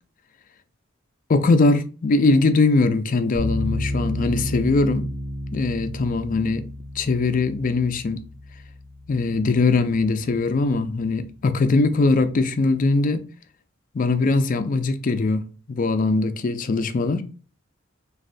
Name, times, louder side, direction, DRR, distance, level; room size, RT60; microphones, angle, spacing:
voice 1, 1.3-5.1 5.5-6.7 7.0-8.2 9.1-13.2 13.9-15.4 15.7-17.2, left 3 dB, 40° left, 0.4 m, -21 dB
sound 1, 3.4-10.5, left 1 dB, 35° right, 1.1 m, -31 dB
3.2 x 2.6 x 2.5 m
head